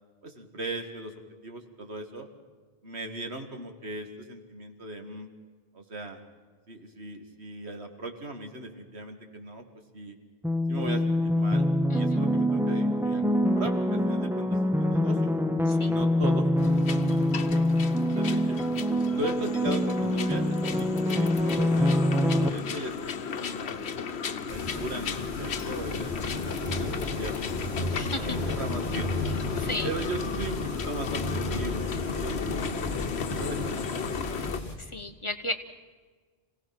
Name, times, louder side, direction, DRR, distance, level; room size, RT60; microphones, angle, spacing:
voice 1, 0.2-2.3 2.8-5.3 5.7-6.2 6.7-9.6 9.9-10.2 10.7-15.3 15.8-18.6 19.1-23.1 23.4-23.9 24.5-29.1 29.8-34.1, right 1 dB, 90° right, 4 dB, 2.3 m, -38 dB
sound 1, 10.4-22.5, left 1 dB, 5° right, 0.5 m, -25 dB
sound 2, 16.6-34.6, left 6 dB, 85° left, 1.2 m, -35 dB
sound 3, 24.5-34.8, left 1 dB, 50° left, 3.5 m, -34 dB
voice 2, 27.9-28.3 29.6-29.9 34.9-35.5, left 1 dB, 30° left, 7 dB, 1.0 m, -33 dB
26.5 x 17.0 x 6.0 m, 1.4 s
omnidirectional pair, 1.1 m